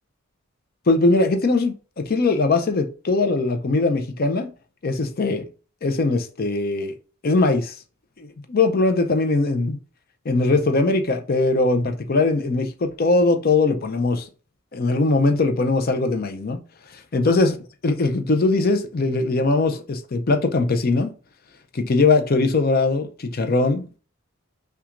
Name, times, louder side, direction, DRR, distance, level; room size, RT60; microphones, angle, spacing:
voice 1, 0.9-4.5 4.8-5.5 5.8-6.9 7.2-7.7 8.2-9.8 10.2-14.3 14.7-16.6 16.9-17.6 17.8-21.1 21.7-24.0, left 3 dB, 45° left, 0.5 m, -21 dB
5.8 x 2.3 x 2.5 m
head